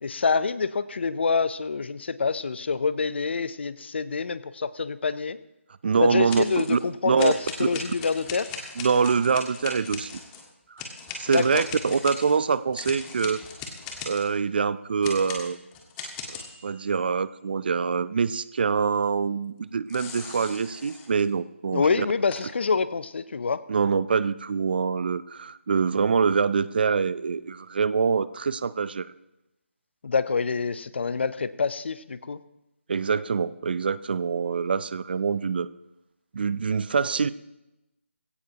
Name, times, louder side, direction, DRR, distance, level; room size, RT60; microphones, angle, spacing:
voice 1, 0.0-5.4 6.0-8.5 11.3-11.6 21.7-23.6 30.0-32.4, left 5 dB, 55° left, 15 dB, 0.7 m, -26 dB
voice 2, 5.8-6.8 7.0-7.3 7.6-7.7 8.8-10.2 11.2-13.4 14.1-15.6 16.3-22.1 23.7-29.1 32.9-35.7 36.3-37.3, right 5 dB, 45° right, 17 dB, 0.5 m, -25 dB
sound 1, 6.3-6.8 7.2-10.4 10.8-14.3 15.0-17.0 19.9-21.2 22.3-22.4, left 5 dB, 15° left, 1.6 m, -39 dB
19.0 x 17.0 x 2.9 m, 0.92 s
figure-of-eight pair, 160°, 7 cm